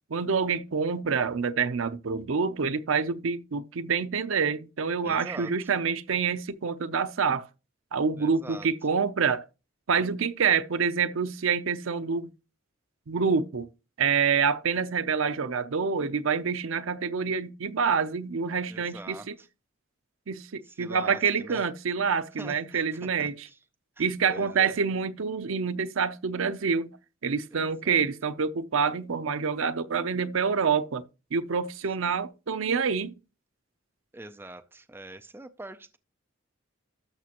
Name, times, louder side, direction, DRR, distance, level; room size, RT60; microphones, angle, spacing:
voice 1, 0.1-7.5 7.9-9.5 9.9-12.3 13.1-13.7 14.0-19.4 20.3-23.5 24.0-26.9 27.2-31.0 31.3-33.2, right 6 dB, 80° right, 0.6 m, -27 dB
voice 2, 5.0-5.7 8.2-8.7 18.7-19.5 20.6-21.7 22.4-23.6 24.0-24.8 27.5-28.0 32.0-32.2 34.1-36.0, right 2 dB, 10° right, 0.3 m, -44 dB
12.5 x 5.9 x 2.9 m
head